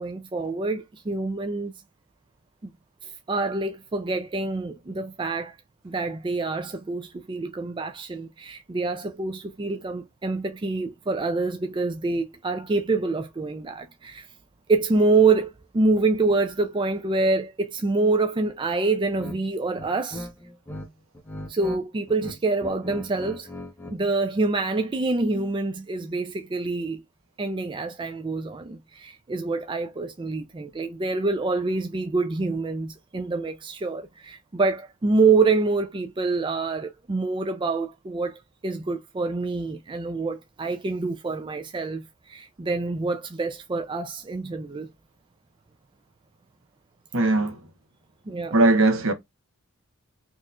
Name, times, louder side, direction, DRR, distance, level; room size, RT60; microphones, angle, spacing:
voice 1, 0.0-1.7 2.6-2.7 3.0-5.6 5.8-14.3 14.7-20.3 21.5-23.5 23.9-27.0 27.4-44.9 48.3-48.6, right 3 dB, 20° right, 0.4 m, -26 dB
bass perm, 19.1-19.4 19.7-20.9 21.1-21.8 22.1-24.0, left 1 dB, 10° left, 0.8 m, -38 dB
voice 2, 47.1-47.6 48.5-49.1, right 2 dB, 65° right, 1.1 m, -19 dB
4.4 x 3.0 x 2.3 m
head